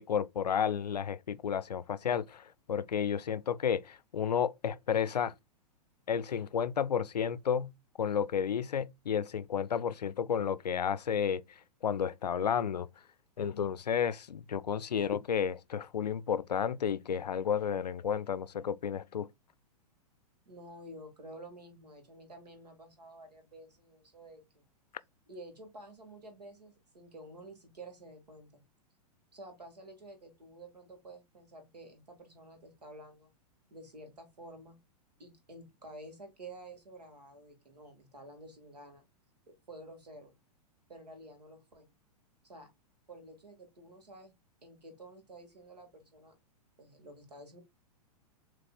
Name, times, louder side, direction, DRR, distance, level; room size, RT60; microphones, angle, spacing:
voice 1, 0.0-5.3 6.1-7.7 8.0-11.4 11.8-12.9 13.4-19.3, left 8 dB, 80° left, 0.4 m, -32 dB
voice 2, 20.5-24.6 25.3-28.6 29.3-33.3 33.7-34.8 35.2-39.0 39.5-40.3 40.9-41.9 42.4-42.7 43.1-44.3 44.6-46.3 46.8-47.6, right 1 dB, 80° right, 1.9 m, -51 dB
6.9 x 3.3 x 2.4 m
figure-of-eight pair, 105°, 21 cm